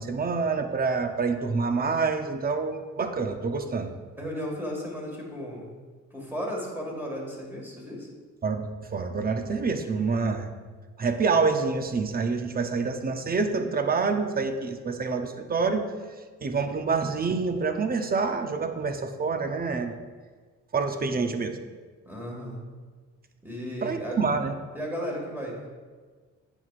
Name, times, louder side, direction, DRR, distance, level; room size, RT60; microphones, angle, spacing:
voice 1, 0.0-3.9 8.4-10.5 11.0-15.8 16.4-19.9 20.7-21.6 23.8-24.5, right 4 dB, 30° right, 7 dB, 0.6 m, -27 dB
voice 2, 4.2-5.7 6.1-8.1 22.0-22.6 23.4-24.2 24.7-25.7, equal, 5° right, -2 dB, 1.9 m, -34 dB
8.9 x 6.1 x 2.5 m, 1.5 s
cardioid pair, 90°, 30 cm